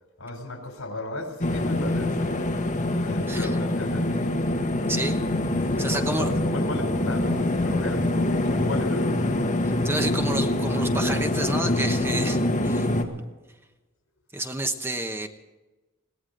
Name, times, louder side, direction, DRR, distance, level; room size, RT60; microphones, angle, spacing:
voice 1, 0.2-2.6 3.0-4.3 5.6-9.2, left 2 dB, 80° left, 3.7 m, -35 dB
sound 1, 1.4-13.0, left 1 dB, 35° left, 1.7 m, -25 dB
voice 2, 3.3-3.6 4.9-5.2 5.8-6.3 9.6-12.9 14.3-15.3, right 1 dB, 10° right, 1.0 m, -30 dB
21.5 x 16.5 x 3.9 m
head